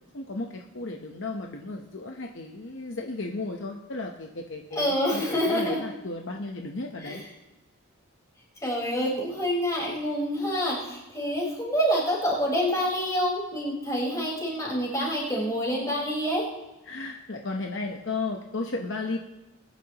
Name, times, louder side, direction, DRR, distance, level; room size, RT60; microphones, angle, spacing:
voice 1, 0.1-7.2 16.9-19.2, left 3 dB, 55° left, 2 dB, 0.9 m, -34 dB
voice 2, 4.7-5.8 7.0-7.2 8.6-16.5, equal, 15° left, -5 dB, 4.4 m, -27 dB
21.5 x 10.5 x 2.9 m, 1.0 s
head